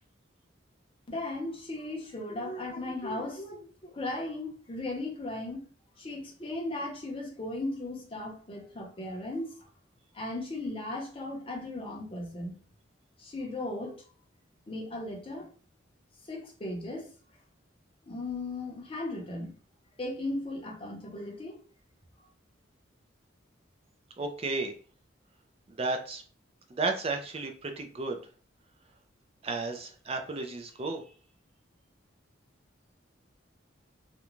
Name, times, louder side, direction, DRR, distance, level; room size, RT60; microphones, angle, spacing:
voice 1, 1.1-5.7 6.0-9.6 10.1-12.6 13.2-14.0 14.7-15.5 16.2-17.1 18.1-19.5 20.0-21.6, left 2 dB, 30° left, 0 dB, 0.7 m, -36 dB
voice 2, 24.2-24.7 25.7-26.2 26.8-28.2 29.4-31.0, right 3 dB, 30° right, 4 dB, 0.4 m, -33 dB
2.5 x 2.2 x 3.0 m, 0.40 s
head